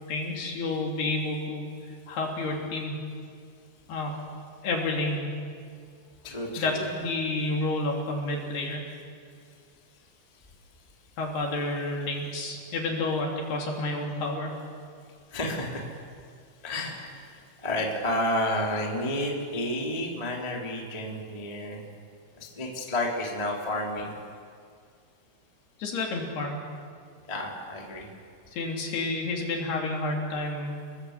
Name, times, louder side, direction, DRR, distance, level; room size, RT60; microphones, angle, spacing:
voice 1, 0.1-1.7 2.1-3.0 3.9-4.2 4.6-5.3 6.6-8.8 11.2-14.6 25.8-26.6 28.5-30.7, left 2 dB, 55° left, 0 dB, 4.6 m, -30 dB
voice 2, 6.2-6.9 15.3-15.8 16.6-21.9 22.4-24.1 27.3-28.1, left 1 dB, 10° left, -1 dB, 2.2 m, -31 dB
28.5 x 21.0 x 8.1 m, 2.2 s
omnidirectional pair, 5.9 m